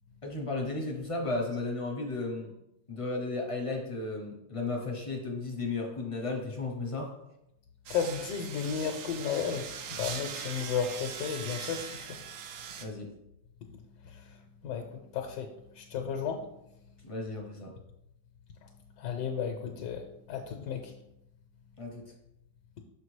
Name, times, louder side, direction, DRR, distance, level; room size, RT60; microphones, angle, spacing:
voice 1, 0.2-2.5 2.9-7.2 12.8-13.1 17.0-17.7 21.8-22.0, left 3 dB, 40° left, 1 dB, 0.4 m, -34 dB
voice 2, 7.9-12.3 12.6-12.9 13.7-16.5 18.6-18.7 19.0-20.9, left 7 dB, 85° left, 3 dB, 1.3 m, -34 dB
sound 1, 7.9-12.9, right 7 dB, 65° right, 0.8 m, -41 dB
5.8 x 5.6 x 3.2 m, 0.83 s
omnidirectional pair, 1.9 m